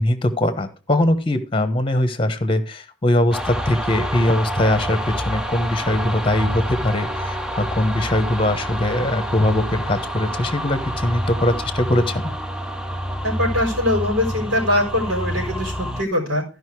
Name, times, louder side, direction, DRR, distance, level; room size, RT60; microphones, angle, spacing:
voice 1, 0.0-12.3, left 1 dB, 25° left, 10 dB, 1.1 m, -21 dB
sound 1, 3.3-16.0, equal, 5° right, 0.6 m, -27 dB
voice 2, 13.2-16.4, left 1 dB, 80° right, 0 dB, 4.2 m, -22 dB
13.5 x 5.3 x 4.7 m, 0.33 s
head